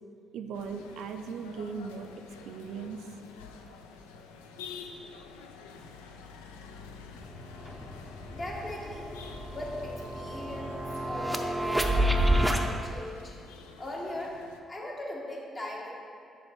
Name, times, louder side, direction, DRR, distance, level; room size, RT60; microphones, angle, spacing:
voice 1, 0.3-3.1, right 5 dB, 70° right, 6 dB, 0.3 m, -38 dB
sound 1, 0.5-14.6, left 5 dB, 85° left, 0.3 m, -48 dB
sound 2, 7.2-7.3 7.6-12.6, right 1 dB, 5° right, 0.6 m, -29 dB
voice 2, 8.3-9.1 9.5-13.3 13.8-14.4 14.7-15.9, left 1 dB, 40° left, -3 dB, 1.4 m, -39 dB
6.7 x 3.4 x 4.5 m, 2.4 s
hypercardioid pair, 45°, 0 cm